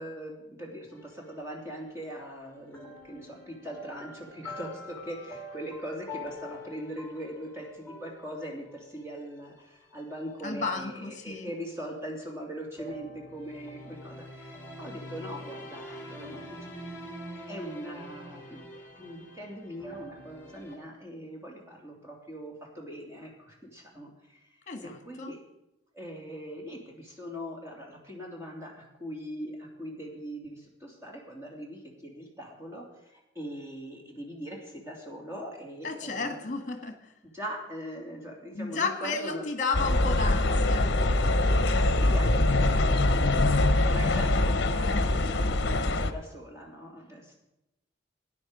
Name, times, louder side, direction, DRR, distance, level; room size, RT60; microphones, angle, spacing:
voice 1, 0.0-16.7 17.3-25.4 25.9-36.6 37.3-39.5 41.7-47.4, equal, 15° right, -2 dB, 2.8 m, -41 dB
sound 1, 0.9-1.9 2.7-10.8 12.8-20.8, left 1 dB, 10° left, 2.0 m, -45 dB
voice 2, 10.4-11.5 24.7-25.3 35.8-37.1 38.5-41.0, left 4 dB, 40° left, 6 dB, 1.6 m, -33 dB
sound 2, 39.7-46.1, left 2 dB, 55° left, 0.9 m, -24 dB
13.5 x 10.0 x 5.1 m, 0.92 s
head